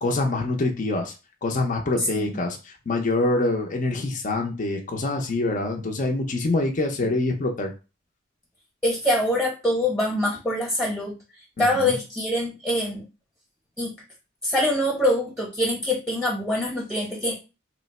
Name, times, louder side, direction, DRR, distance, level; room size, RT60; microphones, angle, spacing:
voice 1, 0.0-1.1 1.4-2.6 2.9-7.7 11.6-11.9, left 2 dB, 40° left, 2 dB, 0.5 m, -25 dB
voice 2, 2.0-2.4 8.8-11.1 11.6-13.0 13.8-13.9 14.4-17.4, left 1 dB, 10° left, -3 dB, 0.8 m, -24 dB
3.0 x 2.1 x 4.1 m, 0.30 s
head